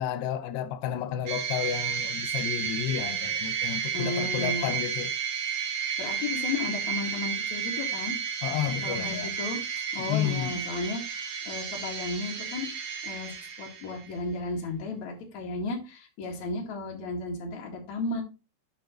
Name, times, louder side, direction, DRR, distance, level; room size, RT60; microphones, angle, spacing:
voice 1, 0.0-5.1 8.4-9.3 10.1-10.5, left 10 dB, 90° left, 3.0 m, -31 dB
sound 1, 1.3-14.1, right 7 dB, 55° right, 2.4 m, -32 dB
voice 2, 3.9-4.7 6.0-8.1 8.8-9.6 9.9-12.7 13.0-18.2, left 3 dB, 50° left, 3.0 m, -34 dB
9.4 x 5.7 x 3.0 m
omnidirectional pair, 4.7 m